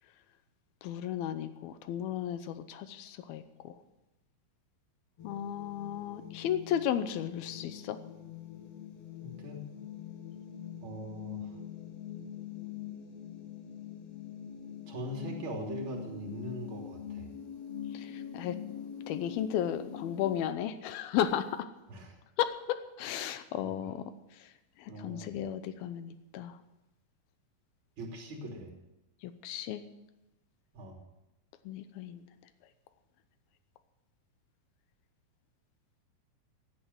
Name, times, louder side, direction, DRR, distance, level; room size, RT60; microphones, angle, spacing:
voice 1, 0.8-3.8 5.2-8.0 17.9-18.6 19.1-21.7 22.4-24.0 24.4-24.5 24.8-26.6 29.2-29.9 31.7-32.2, left 10 dB, 85° left, 11 dB, 2.7 m, -34 dB
sound 1, 5.2-20.5, left 8 dB, 60° left, 1.9 m, -44 dB
voice 2, 9.2-9.7 10.8-11.6 14.9-17.3 21.9-22.2 23.6-23.9 24.9-25.4 28.0-28.7 30.7-31.0, right 1 dB, 35° right, 1 dB, 3.6 m, -41 dB
16.0 x 9.1 x 7.9 m, 0.98 s
omnidirectional pair, 4.3 m